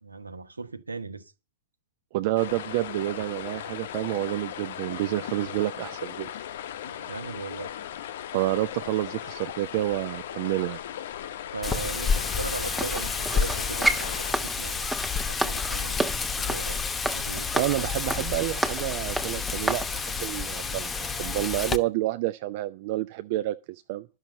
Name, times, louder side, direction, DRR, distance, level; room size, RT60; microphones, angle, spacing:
voice 1, 0.0-1.3 6.8-7.7 11.5-14.9 15.2-16.0 16.4-16.8 17.1-17.9, right 4 dB, 85° right, 1.3 m, -38 dB
voice 2, 2.1-6.3 8.3-10.8 17.5-24.1, right 16 dB, 50° right, 0.5 m, -29 dB
sound 1, 2.4-14.3, left 10 dB, 60° left, 0.7 m, -38 dB
Wind, 11.6-21.8, left 5 dB, 15° left, 1.0 m, -30 dB
sound 2, 12.8-19.9 20.4-20.5, right 2 dB, 5° right, 1.3 m, -31 dB
12.0 x 6.4 x 7.6 m
figure-of-eight pair, 100°, 0 cm